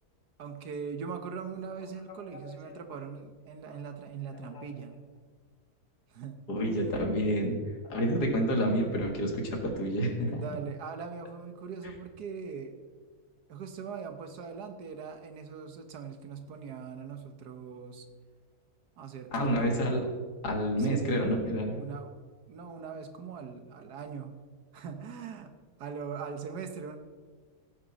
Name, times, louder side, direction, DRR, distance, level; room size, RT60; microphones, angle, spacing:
voice 1, 0.4-5.0 6.1-6.4 6.7-7.0 10.2-12.8 13.5-18.0 19.0-20.2 20.8-21.4 21.7-22.1 22.5-24.4 24.7-25.5 25.8-27.0, right 6 dB, 85° right, 7 dB, 1.7 m, -41 dB
voice 2, 2.4-2.7 4.5-4.6 6.5-7.5 7.8-10.4 19.3-20.1 20.4-21.8, equal, 85° left, 2 dB, 2.4 m, -29 dB
16.5 x 8.5 x 4.1 m, 1.5 s
omnidirectional pair, 1.7 m